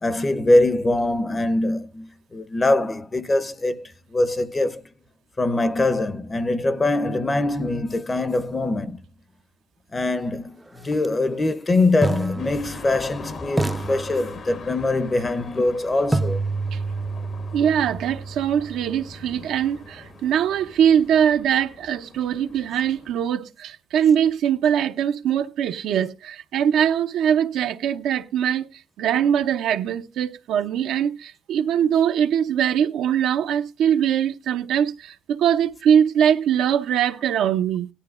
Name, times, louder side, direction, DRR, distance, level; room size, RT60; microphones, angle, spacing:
voice 1, 0.0-4.8 5.4-9.0 9.9-16.4, left 2 dB, 25° left, 0.9 m, -23 dB
sound 1, 10.9-11.1 12.0-13.2 13.6-14.8 16.1-20.0, right 2 dB, 10° right, 0.6 m, -29 dB
sound 2, 12.4-23.2, left 4 dB, 60° left, 1.5 m, -42 dB
voice 2, 17.5-28.7 29.0-37.9, right 9 dB, 80° right, 0.8 m, -22 dB
17.5 x 11.5 x 2.5 m
cardioid pair, 90°, 0 cm